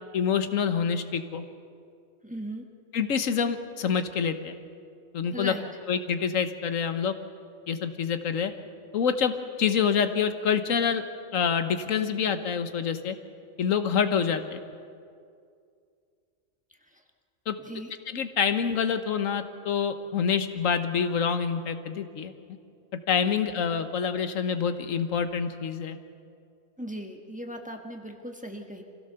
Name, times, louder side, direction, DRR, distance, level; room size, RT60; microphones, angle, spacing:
voice 1, 0.1-1.4 2.9-4.5 5.1-5.5 5.9-7.1 7.7-8.5 8.9-11.0 11.3-13.2 13.6-14.6 17.5-17.6 18.1-22.3 23.1-26.0, left 7 dB, 90° left, 9 dB, 1.4 m, -26 dB
voice 2, 2.2-2.7 5.3-5.6 16.9-17.0 17.6-17.9 26.8-28.8, equal, 5° right, 2 dB, 1.4 m, -38 dB
25.5 x 16.0 x 6.8 m, 2.3 s
omnidirectional pair, 1.3 m